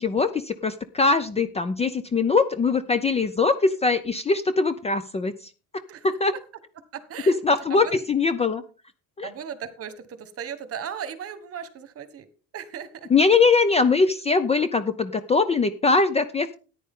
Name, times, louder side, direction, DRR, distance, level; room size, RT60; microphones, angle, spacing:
voice 1, 0.0-5.5 6.0-6.3 7.3-8.6 9.2-9.3 13.1-16.5, left 4 dB, 20° left, 12 dB, 0.5 m, -22 dB
voice 2, 6.9-8.0 9.2-12.3 12.5-13.1, right 8 dB, 40° right, 12 dB, 1.4 m, -37 dB
14.0 x 9.9 x 3.7 m, 0.37 s
cardioid pair, 150°, 36 cm